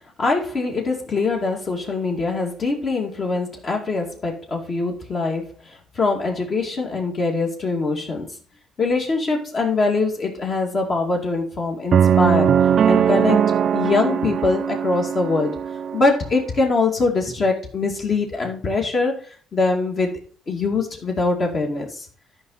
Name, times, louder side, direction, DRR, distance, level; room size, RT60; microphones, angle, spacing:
voice 1, 0.2-8.3 8.8-12.6 12.9-15.6 15.9-19.2 19.5-20.1 20.5-22.1, left 3 dB, 40° left, 0 dB, 2.4 m, -23 dB
sound 1, 11.9-16.0, right 8 dB, 50° right, 0.4 m, -19 dB
12.5 x 5.4 x 4.0 m, 0.42 s
cardioid pair, 120°, 0 cm